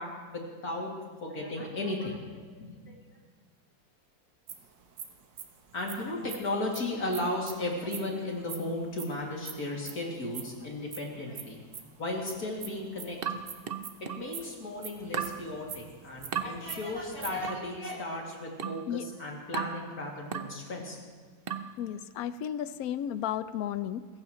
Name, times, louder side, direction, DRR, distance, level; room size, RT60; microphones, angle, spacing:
voice 1, 0.0-2.9 5.7-11.6 12.0-13.4 14.0-21.0, left 1 dB, 55° left, -2 dB, 3.0 m, -35 dB
sound 1, 4.5-8.0 8.3-10.0 10.3-17.6, right 7 dB, 75° right, 1.8 m, -43 dB
sound 2, 13.2-14.3 15.1-15.4 16.3-16.5 17.4-17.7 18.6-18.9 19.5-19.8 20.3-20.6 21.5-21.8, right 7 dB, 60° right, 0.6 m, -35 dB
voice 2, 21.8-24.1, left 10 dB, 70° left, 14 dB, 0.9 m, -33 dB
24.5 x 15.0 x 3.1 m, 1.5 s
omnidirectional pair, 2.0 m